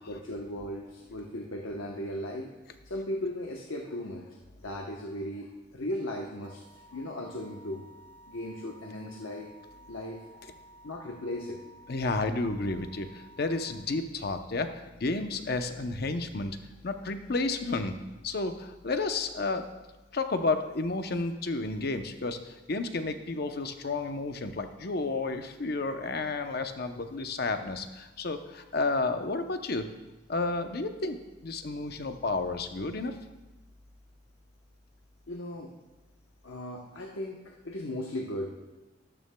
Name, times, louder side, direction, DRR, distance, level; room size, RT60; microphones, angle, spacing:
voice 1, 0.1-2.5 2.8-7.8 8.3-9.5 9.9-10.4 10.8-11.6 35.3-35.7 36.4-38.5, left 1 dB, 80° left, 0 dB, 0.9 m, -37 dB
sound 1, 6.4-13.7, right 1 dB, 80° right, 1.7 m, -54 dB
voice 2, 11.9-16.6 16.8-18.0 18.2-19.6 20.1-29.9 30.3-31.2 31.4-33.2, left 3 dB, 50° left, 7 dB, 0.7 m, -31 dB
13.0 x 12.5 x 2.2 m, 1.2 s
head